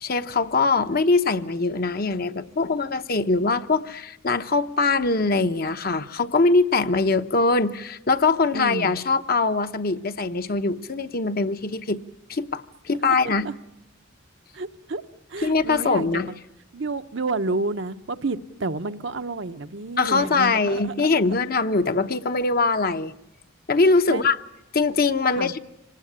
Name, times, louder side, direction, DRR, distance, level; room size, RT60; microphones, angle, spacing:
voice 1, 0.0-12.0 12.3-13.5 15.4-16.3 20.0-23.1 23.7-24.4 24.7-25.6, left 3 dB, 45° left, 0.9 m, -22 dB
voice 2, 8.5-9.0 13.2-13.5 14.5-15.0 15.3-16.4 16.7-21.3 24.1-24.3 25.3-25.5, right 3 dB, 60° right, 0.9 m, -30 dB
26.5 x 19.0 x 9.9 m
head